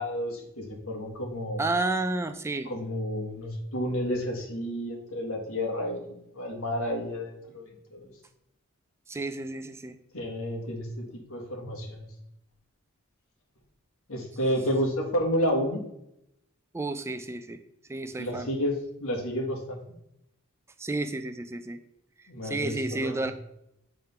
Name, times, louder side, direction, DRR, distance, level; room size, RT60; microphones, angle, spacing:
voice 1, 0.0-1.6 2.6-8.1 10.1-12.1 14.1-15.8 18.2-19.8 22.3-23.3, equal, 75° left, 1 dB, 1.6 m, -31 dB
voice 2, 1.6-2.7 9.1-10.0 16.7-17.6 17.9-18.5 20.8-21.8 22.2-23.3, right 2 dB, 10° right, 8 dB, 0.3 m, -31 dB
7.5 x 3.7 x 5.5 m, 0.80 s
head